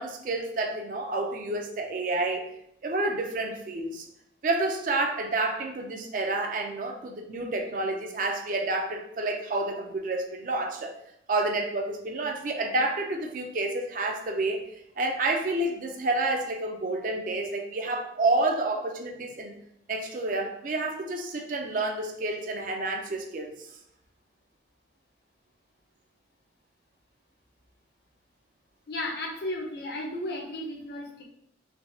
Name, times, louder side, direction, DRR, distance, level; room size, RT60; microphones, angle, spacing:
voice 1, 0.0-2.5 2.8-4.1 4.4-10.9 11.3-14.7 15.0-19.5 19.9-23.7, right 2 dB, 45° right, 3 dB, 0.4 m, -29 dB
voice 2, 28.9-31.2, left 1 dB, 60° left, 0 dB, 0.6 m, -34 dB
3.3 x 2.8 x 2.6 m, 0.75 s
head